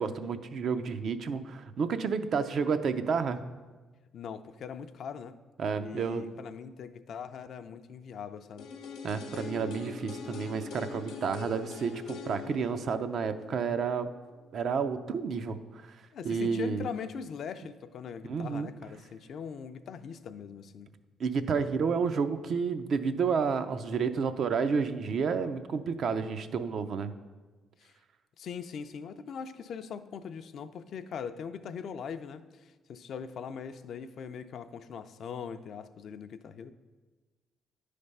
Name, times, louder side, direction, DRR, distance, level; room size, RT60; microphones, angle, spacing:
voice 1, 0.0-3.4 5.6-6.3 9.0-14.1 14.5-15.6 16.2-16.8 18.2-18.7 21.2-27.1, right 5 dB, 60° right, 9 dB, 0.4 m, -30 dB
voice 2, 4.1-5.3 5.7-8.7 16.1-20.9 27.8-27.9 28.4-36.7, left 7 dB, 65° left, 10 dB, 0.4 m, -41 dB
sound 1, 8.6-14.5 14.8-14.9, left 5 dB, 85° left, 0.8 m, -43 dB
9.6 x 3.3 x 5.3 m, 1.3 s
cardioid pair, 90°, 0 cm